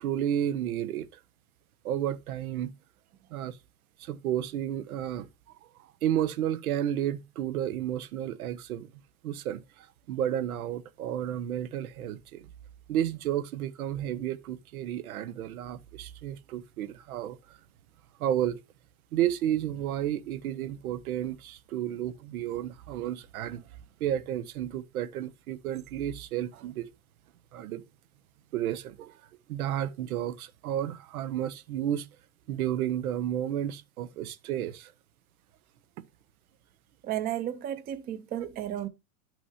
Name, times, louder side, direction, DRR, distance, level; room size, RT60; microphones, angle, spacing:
voice 1, 0.0-1.2 1.8-2.7 3.3-3.6 4.0-5.3 5.6-12.5 12.9-17.6 18.2-18.6 19.1-23.7 24.0-26.9 27.5-27.8 28.5-29.2 29.5-32.1 32.5-34.9, right 11 dB, 85° right, 0.9 m, -32 dB
voice 2, 37.0-38.9, right 11 dB, 20° right, 0.6 m, -33 dB
11.0 x 6.1 x 2.7 m
supercardioid pair, 140°, 42 cm